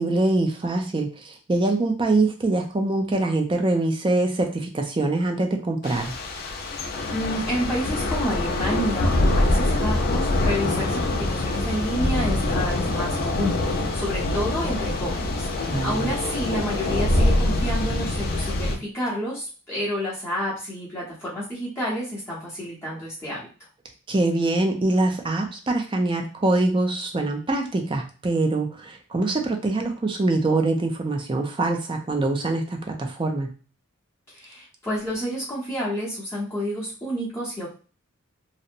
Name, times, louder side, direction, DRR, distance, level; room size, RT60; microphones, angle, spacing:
voice 1, 0.0-6.1 15.7-16.1 24.1-33.5, right 2 dB, 25° right, 3 dB, 0.4 m, -24 dB
Thunder / Rain, 5.8-18.8, left 2 dB, 45° left, 0.4 m, -24 dB
voice 2, 6.8-23.4 34.3-37.7, equal, 15° left, -8 dB, 0.9 m, -30 dB
2.7 x 2.0 x 2.5 m, 0.38 s
head